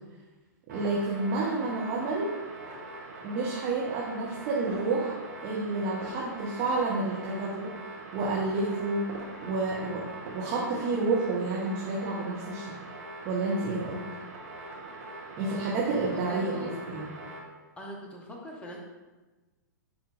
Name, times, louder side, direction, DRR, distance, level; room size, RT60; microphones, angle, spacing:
voice 1, 0.7-2.3 3.2-5.2 5.4-7.7 8.1-9.2 9.4-12.6 13.2-14.0 15.4-17.1, right 3 dB, 35° right, -5 dB, 1.2 m, -30 dB
sound 1, 0.7-17.4, right 2 dB, 60° right, 2.0 m, -42 dB
voice 2, 16.1-16.7 17.8-18.8, left 1 dB, 10° left, -1 dB, 1.0 m, -41 dB
10.0 x 4.4 x 2.6 m, 1.2 s
figure-of-eight pair, 105°, 10 cm